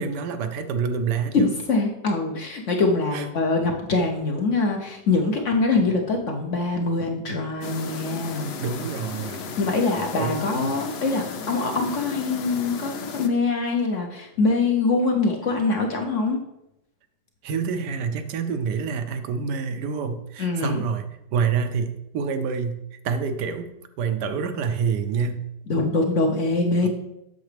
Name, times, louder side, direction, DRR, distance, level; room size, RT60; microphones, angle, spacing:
voice 1, 0.0-1.5 3.1-3.3 8.6-9.5 10.1-10.8 17.4-25.5 26.8-26.9, right 6 dB, 75° right, 8 dB, 1.2 m, -27 dB
voice 2, 1.3-8.5 9.6-16.4 20.4-20.8 25.7-26.9, left 3 dB, 55° left, 2 dB, 0.9 m, -23 dB
sound 1, 7.6-13.3, left 5 dB, 85° left, 0.5 m, -35 dB
8.0 x 6.7 x 3.3 m, 0.86 s
omnidirectional pair, 1.9 m